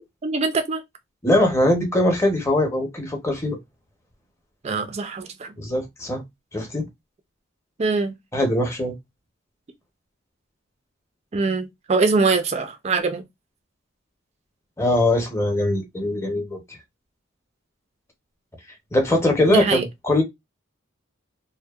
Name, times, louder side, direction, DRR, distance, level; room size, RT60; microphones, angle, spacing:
voice 1, 0.2-0.8 4.6-5.5 7.8-8.1 11.3-13.2 19.5-19.8, right 4 dB, 35° right, 0.4 m, -23 dB
voice 2, 1.2-3.6 5.6-6.2 6.5-6.8 8.3-8.9 14.8-16.6 18.9-20.2, left 1 dB, 15° left, 0.7 m, -21 dB
2.6 x 2.1 x 2.2 m
head